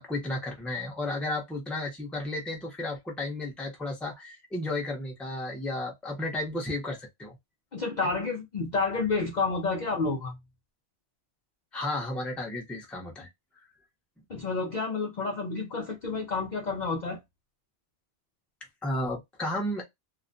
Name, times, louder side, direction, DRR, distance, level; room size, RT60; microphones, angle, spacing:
voice 1, 0.0-7.4 8.0-8.1 11.7-13.3 18.8-19.8, left 1 dB, ahead, 0.5 m, -33 dB
voice 2, 7.7-10.4 14.3-17.2, left 4 dB, 55° left, 0.5 m, -30 dB
2.4 x 2.1 x 2.5 m
omnidirectional pair, 1.2 m